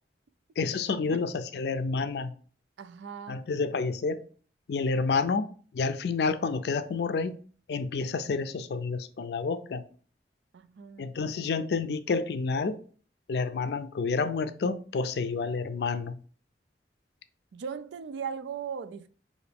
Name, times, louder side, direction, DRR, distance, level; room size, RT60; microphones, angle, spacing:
voice 1, 0.6-2.3 3.3-4.2 4.7-5.5 5.7-7.4 7.7-9.8 11.0-12.8 13.3-16.2, left 4 dB, 65° left, 0.4 m, -29 dB
voice 2, 2.8-3.4 10.5-11.2 17.5-19.1, right 6 dB, 85° right, 0.4 m, -38 dB
4.9 x 2.6 x 3.3 m
head